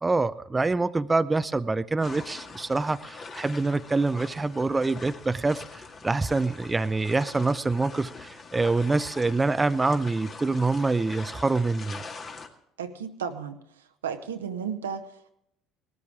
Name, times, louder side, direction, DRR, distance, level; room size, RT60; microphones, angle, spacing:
voice 1, 0.0-12.0, right 3 dB, 20° right, 13 dB, 0.5 m, -26 dB
sound 1, 2.0-12.5, left 4 dB, 40° left, 2.0 m, -43 dB
voice 2, 12.8-13.6 14.0-15.1, right 7 dB, 85° right, 7 dB, 1.0 m, -33 dB
19.0 x 13.5 x 3.6 m, 0.76 s
hypercardioid pair, 60°, 0 cm